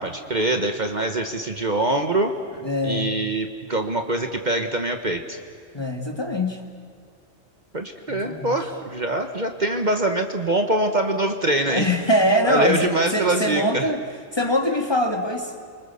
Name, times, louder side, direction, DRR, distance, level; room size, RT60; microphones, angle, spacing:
voice 1, 0.0-2.3 2.8-5.4 7.7-11.9 12.4-13.9, right 2 dB, 40° right, 5 dB, 1.4 m, -24 dB
voice 2, 2.6-3.1 5.7-6.6 8.1-8.5 11.7-14.0 14.3-15.5, left 1 dB, 20° left, 4 dB, 1.9 m, -23 dB
29.5 x 24.5 x 7.0 m, 2.3 s
omnidirectional pair, 1.3 m